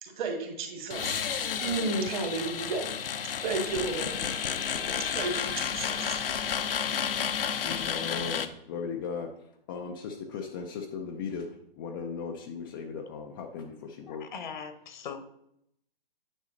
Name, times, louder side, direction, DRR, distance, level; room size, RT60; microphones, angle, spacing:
voice 1, 0.0-2.9 3.4-4.2 5.1-6.2, right 3 dB, 50° right, 3 dB, 2.2 m, -33 dB
sound 1, 0.9-8.5, left 7 dB, 65° left, 0.9 m, -31 dB
voice 2, 7.6-14.3, left 5 dB, 20° left, 2 dB, 0.5 m, -37 dB
voice 3, 14.1-15.2, left 7 dB, 50° left, 9 dB, 1.2 m, -40 dB
9.7 x 6.2 x 3.9 m, 0.75 s
hypercardioid pair, 145°, 30 cm